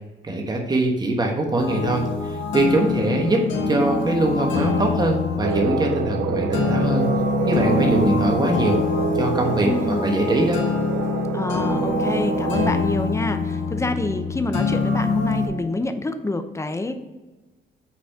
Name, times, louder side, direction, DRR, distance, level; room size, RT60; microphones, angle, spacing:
voice 1, 0.2-7.1 7.5-8.8 9.1-9.7 10.0-10.6, right 2 dB, 20° right, 1 dB, 1.2 m, -22 dB
sound 1, 1.6-15.5, left 4 dB, 70° left, 1.5 m, -25 dB
sound 2, 5.4-12.7, right 8 dB, 70° right, 0.5 m, -28 dB
voice 2, 9.6-10.1 11.3-16.9, left 2 dB, 15° left, 8 dB, 0.6 m, -27 dB
5.9 x 4.1 x 4.6 m, 1.2 s
cardioid pair, 90°, 20 cm